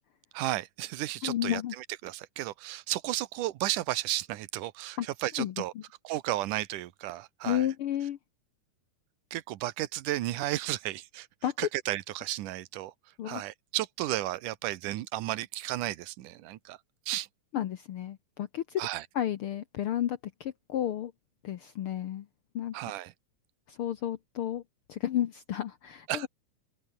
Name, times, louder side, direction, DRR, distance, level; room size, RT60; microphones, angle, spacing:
voice 1, 0.3-5.7 6.0-7.7 9.3-11.3 11.6-12.9 13.3-16.8 17.1-17.3 18.8-19.0 22.7-23.1 26.1-26.3, right 15 dB, 75° right, 2.6 m, -33 dB
voice 2, 1.2-1.7 5.0-5.1 5.4-5.8 7.4-8.2 11.4-11.5 13.2-13.4 17.5-18.8 19.1-21.1 21.4-22.3 22.5-22.7 23.7-24.6 24.9-26.3, left 11 dB, 80° left, 1.2 m, -32 dB
omnidirectional pair, 3.7 m